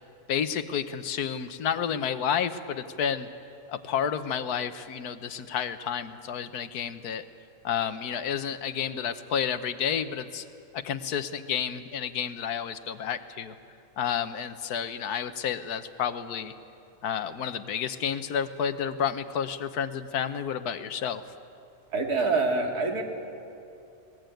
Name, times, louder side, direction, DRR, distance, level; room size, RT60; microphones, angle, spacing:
voice 1, 0.3-3.3 3.7-7.2 7.6-10.4 10.7-13.5 14.0-16.5 17.0-21.2, left 8 dB, 85° left, 11 dB, 1.5 m, -30 dB
voice 2, 21.9-23.0, right 3 dB, 85° right, 2 dB, 2.8 m, -25 dB
21.0 x 20.0 x 9.2 m, 2.7 s
omnidirectional pair, 1.6 m